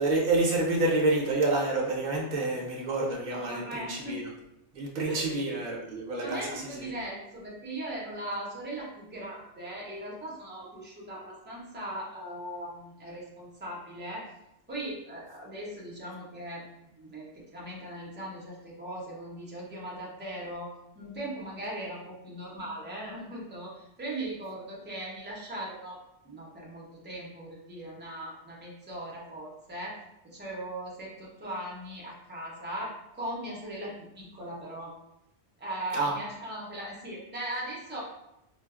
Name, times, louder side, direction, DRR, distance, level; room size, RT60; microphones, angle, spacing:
voice 1, 0.0-4.2 4.7-6.9 35.9-36.1, right 2 dB, 50° right, -2 dB, 0.7 m, -28 dB
voice 2, 3.3-4.2 5.1-5.3 6.2-14.3 14.7-16.6 17.0-26.0 26.2-30.0 30.2-34.9 35.6-38.0, right 1 dB, 15° right, -4 dB, 0.5 m, -39 dB
4.4 x 2.0 x 2.4 m, 0.87 s
omnidirectional pair, 1.2 m